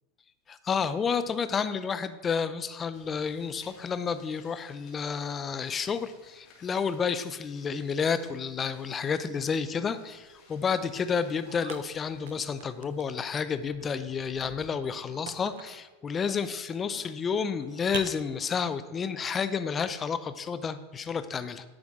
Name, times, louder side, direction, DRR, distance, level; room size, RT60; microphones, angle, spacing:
voice 1, 0.5-21.6, left 6 dB, 20° left, 12 dB, 0.6 m, -30 dB
sound 1, 2.9-14.6, left 3 dB, 50° left, 3.1 m, -59 dB
sound 2, 3.0-4.5 4.7-6.1 6.4-7.0 7.3-7.6 7.9-8.0 8.3-8.4 8.7-13.3 13.7-15.9 16.5-18.0, right 9 dB, 85° right, 0.7 m, -48 dB
9.9 x 8.7 x 3.7 m, 1.1 s
supercardioid pair, 135°, 0 cm